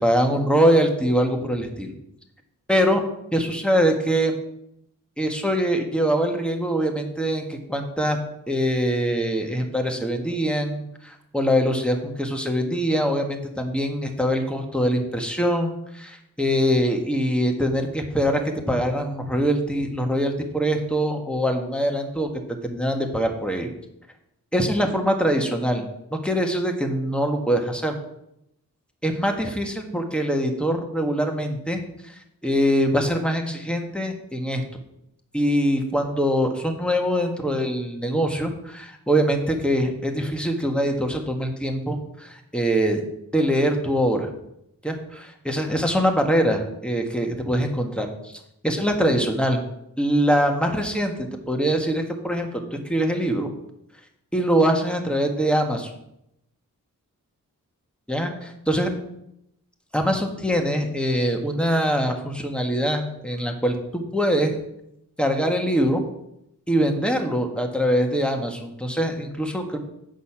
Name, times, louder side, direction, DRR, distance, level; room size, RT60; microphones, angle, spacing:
voice 1, 0.0-1.9 2.7-3.0 3.3-4.3 5.2-8.2 8.5-22.3 22.6-23.7 24.5-28.0 29.0-34.6 35.3-43.0 43.3-44.3 44.8-48.3 48.6-49.6 50.0-52.6 52.9-53.5 54.3-55.9 58.1-58.9 59.9-64.6 65.2-66.0 66.7-69.8, equal, 5° left, 3 dB, 1.6 m, -23 dB
8.2 x 6.4 x 5.8 m, 0.81 s
wide cardioid pair, 60°, 33 cm